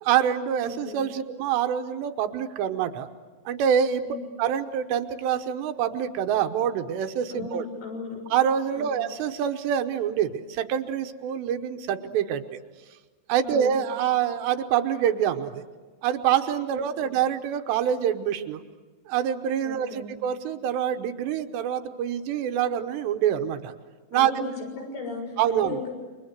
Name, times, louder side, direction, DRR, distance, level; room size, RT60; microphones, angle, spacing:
voice 1, 0.0-3.1 3.5-4.0 4.4-7.6 8.3-12.6 13.3-15.6 16.0-18.6 19.1-23.7 24.1-24.3 25.4-25.8, right 9 dB, 80° right, 7 dB, 3.2 m, -26 dB
voice 2, 0.6-1.1 4.0-4.3 7.3-8.2 8.7-9.0 13.4-13.7 16.7-17.1 19.6-20.1 24.1-25.9, left 4 dB, 70° left, 1 dB, 8.8 m, -37 dB
29.0 x 24.0 x 8.0 m, 1.3 s
omnidirectional pair, 5.0 m